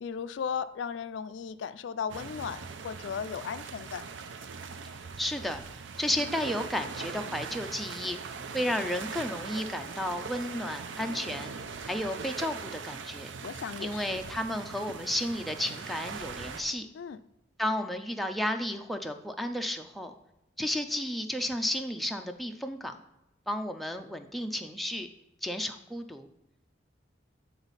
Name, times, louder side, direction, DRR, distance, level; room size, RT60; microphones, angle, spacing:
voice 1, 0.0-4.0 13.4-14.2 16.9-17.2, left 7 dB, 70° left, 13 dB, 0.3 m, -36 dB
sound 1, 2.1-16.6, right 5 dB, 80° right, 0.5 m, -41 dB
voice 2, 5.2-11.5 11.8-13.3 13.8-16.9 17.6-20.1 20.6-23.0 23.5-25.1 25.4-26.3, left 1 dB, ahead, 4 dB, 0.4 m, -33 dB
8.7 x 4.0 x 4.0 m, 0.91 s
head